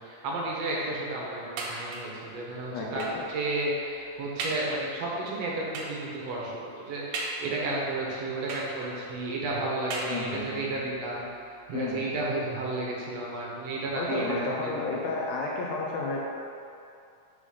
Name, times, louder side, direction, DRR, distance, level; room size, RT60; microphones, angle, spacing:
voice 1, 0.0-11.2 11.7-14.7, right 2 dB, 65° right, -4 dB, 2.0 m, -32 dB
sound 1, 1.6-2.2 3.0-3.3 3.8-3.9 4.4-4.8 5.7-6.1 7.1-7.8 8.5-9.1 9.9-10.6 11.4-11.5 11.8-11.9, right 2 dB, 90° right, 2.3 m, -36 dB
voice 2, 2.7-3.2 10.1-10.8 11.7-12.1 13.9-16.2, left 3 dB, 75° left, -3 dB, 1.7 m, -32 dB
5.3 x 4.9 x 5.5 m, 2.5 s
omnidirectional pair, 3.5 m